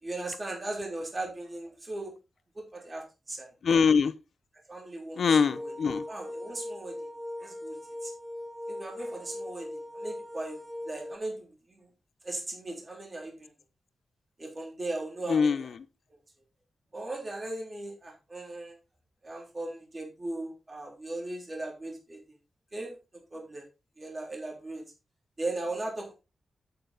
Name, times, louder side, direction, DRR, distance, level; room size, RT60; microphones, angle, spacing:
voice 1, 0.0-2.1 2.5-3.5 4.7-5.7 6.1-7.1 7.4-7.8 8.0-8.1 8.7-10.6 10.8-11.9 12.2-13.5 14.4-15.7 16.9-18.8 19.2-22.3 22.7-22.9 23.3-23.6 24.0-24.8 25.4-26.1, right 2 dB, 25° right, 3.4 m, -38 dB
voice 2, 3.6-4.1 5.1-6.0 15.3-15.7, left 6 dB, 70° left, 0.8 m, -23 dB
sound 1, 5.3-11.2, left 1 dB, 5° left, 0.5 m, -40 dB
8.9 x 8.0 x 4.0 m
wide cardioid pair, 115°, 0 cm